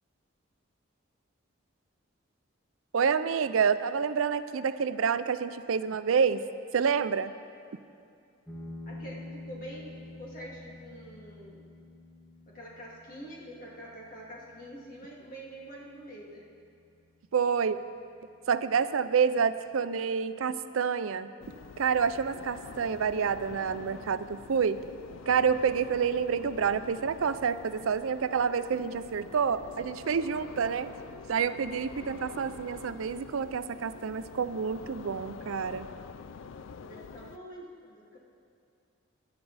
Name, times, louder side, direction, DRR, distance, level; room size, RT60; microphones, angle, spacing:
voice 1, 2.9-6.4 6.7-7.3 17.3-17.8 18.5-21.3 21.8-24.8 25.3-30.9 31.3-35.9, right 6 dB, 90° right, 13 dB, 0.5 m, -28 dB
sound 1, 8.5-17.5, left 2 dB, 10° left, 1.4 m, -48 dB
voice 2, 8.9-11.6 12.5-16.4 36.8-38.2, right 1 dB, 40° left, -4 dB, 2.4 m, -46 dB
sound 2, 21.4-37.4, left 5 dB, 70° left, 0.4 m, -46 dB
19.5 x 10.5 x 4.1 m, 2.5 s
head